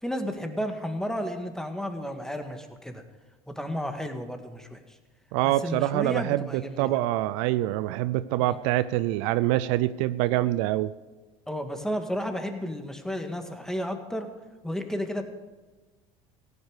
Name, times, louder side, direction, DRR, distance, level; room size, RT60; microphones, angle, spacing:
voice 1, 0.0-3.0 3.5-5.0 5.4-7.0 8.4-8.6 11.5-14.3 14.6-15.2, equal, 5° left, 6 dB, 2.0 m, -32 dB
voice 2, 5.3-10.9, right 15 dB, 70° right, 16 dB, 0.5 m, -25 dB
16.0 x 9.5 x 6.7 m, 1.2 s
hypercardioid pair, 70°, 17 cm